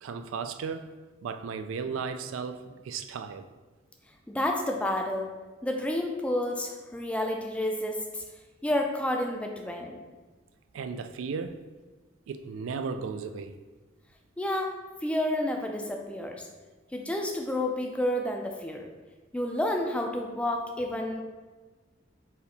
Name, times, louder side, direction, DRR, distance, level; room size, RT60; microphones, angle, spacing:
voice 1, 0.0-0.9 1.2-3.5 10.7-11.6 12.3-13.6, right 5 dB, 85° right, 0.3 m, -35 dB
voice 2, 4.3-5.3 5.6-8.2 8.6-10.0 14.4-14.7 15.0-16.5 16.9-18.9 19.3-21.2, left 1 dB, 5° left, 0.3 m, -30 dB
4.1 x 2.7 x 4.0 m
head